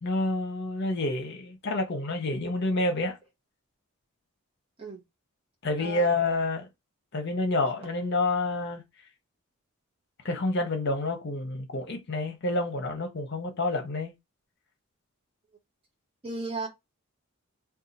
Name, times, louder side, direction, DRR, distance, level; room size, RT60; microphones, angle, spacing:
voice 1, 0.0-3.2 5.6-6.7 7.1-8.8 10.2-14.1, left 2 dB, 50° left, 0.8 m, -28 dB
voice 2, 5.8-6.4 16.2-16.7, right 2 dB, 25° right, 1.0 m, -35 dB
2.6 x 2.3 x 3.9 m
head